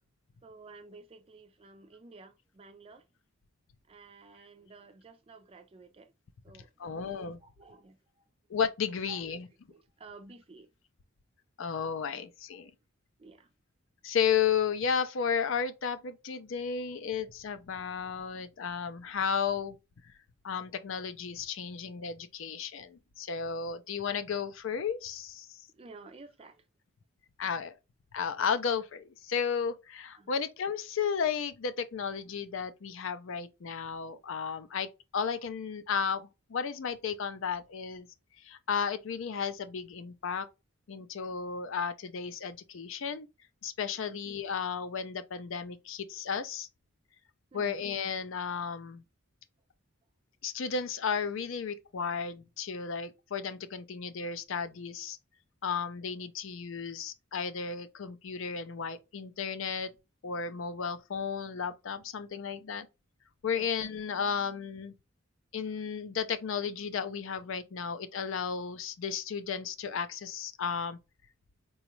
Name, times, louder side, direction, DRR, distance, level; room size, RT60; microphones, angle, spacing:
voice 1, 0.4-3.1 3.9-6.1 6.4-8.3 9.0-9.4 9.7-10.7 12.5-12.7 13.2-13.5 25.7-26.6 30.1-30.3 44.0-44.2 47.5-47.7 63.5-63.7, right 3 dB, 25° right, 0.4 m, -53 dB
voice 2, 6.8-7.4 8.5-9.5 11.6-12.7 14.0-19.8 20.0-20.1 20.4-25.6 27.4-27.8 28.1-38.1 38.4-40.5 40.9-43.3 43.6-46.7 47.5-49.0 50.4-55.2 55.6-59.9 60.2-62.9 63.4-64.9 65.5-71.0, left 6 dB, 60° left, 0.4 m, -33 dB
4.0 x 2.3 x 3.0 m
head